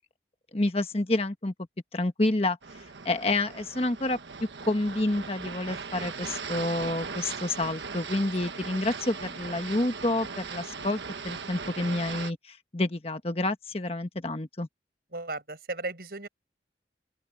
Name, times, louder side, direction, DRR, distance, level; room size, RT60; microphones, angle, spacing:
voice 1, 0.5-1.5 1.9-2.6 3.0-4.2 4.7-11.0 11.2-14.7, left 2 dB, 35° left, 1.3 m, -28 dB
sound 1, 2.6-12.3, right 5 dB, 80° right, 1.3 m, -39 dB
voice 2, 15.1-16.3, right 3 dB, 55° right, 5.8 m, -35 dB
open air
head